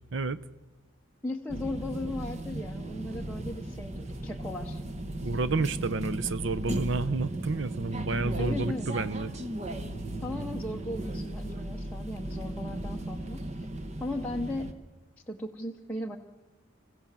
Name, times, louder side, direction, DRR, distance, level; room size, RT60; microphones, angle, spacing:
voice 1, 0.1-0.4 5.2-9.3, right 3 dB, 60° right, 0.7 m, -30 dB
voice 2, 1.2-4.8 8.4-8.9 10.2-13.7 14.0-14.7 15.3-16.2, left 1 dB, 5° left, 0.8 m, -37 dB
sound 1, 1.5-14.7, right 1 dB, 30° right, 1.0 m, -36 dB
27.5 x 15.5 x 7.4 m
head